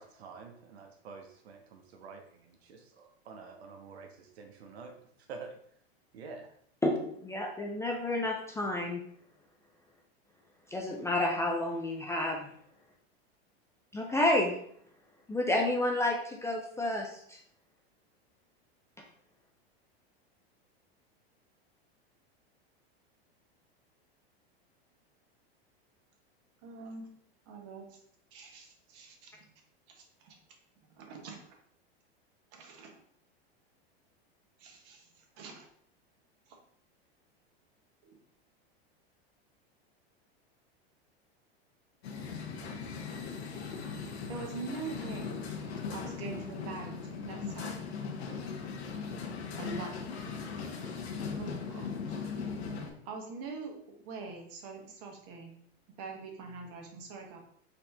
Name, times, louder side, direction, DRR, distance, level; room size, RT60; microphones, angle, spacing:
voice 1, 0.0-5.0 5.3-5.6 6.1-6.5, right 4 dB, 80° right, 5 dB, 0.8 m, -48 dB
voice 2, 6.8-9.0 10.7-12.4 13.9-14.5 15.3-17.4, left 1 dB, 10° left, 0 dB, 0.3 m, -30 dB
voice 3, 26.6-27.2 27.5-28.0 28.3-29.4 29.9-30.4 30.9-31.4 32.5-33.0 34.6-35.7 36.5-36.6 38.0-38.2 44.3-45.4 45.9-47.7 49.6-50.0 51.4-52.0 53.0-55.6 56.0-57.4, right 4 dB, 50° right, 2 dB, 1.1 m, -44 dB
sound 1, 42.0-52.9, left 5 dB, 80° left, 0.9 m, -39 dB
4.1 x 2.8 x 3.4 m, 0.66 s
hypercardioid pair, 115°, 31 cm